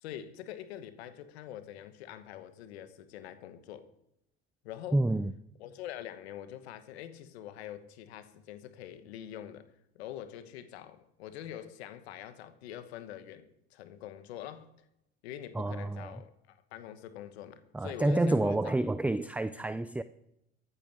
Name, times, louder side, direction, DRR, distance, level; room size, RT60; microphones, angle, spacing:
voice 1, 0.0-3.9 4.6-5.0 5.6-9.7 9.9-14.7 15.2-18.8 19.6-19.7, left 11 dB, 85° left, 1.2 m, -45 dB
voice 2, 4.9-5.3 15.5-16.1 17.7-20.0, right 2 dB, 5° right, 0.5 m, -28 dB
14.0 x 8.6 x 6.5 m
hypercardioid pair, 70°, 32 cm